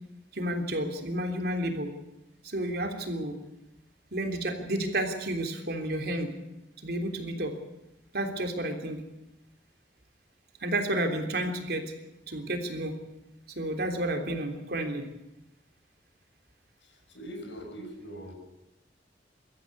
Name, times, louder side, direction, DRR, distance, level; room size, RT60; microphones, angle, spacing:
voice 1, 0.3-1.9 2.4-3.3 4.1-6.3 6.8-7.5 8.1-9.0 10.6-11.9 12.3-13.0 13.5-15.0, right 1 dB, 60° right, 4 dB, 3.3 m, -31 dB
voice 2, 16.8-18.4, equal, 90° left, 3 dB, 6.2 m, -42 dB
23.5 x 13.5 x 9.8 m, 0.93 s
head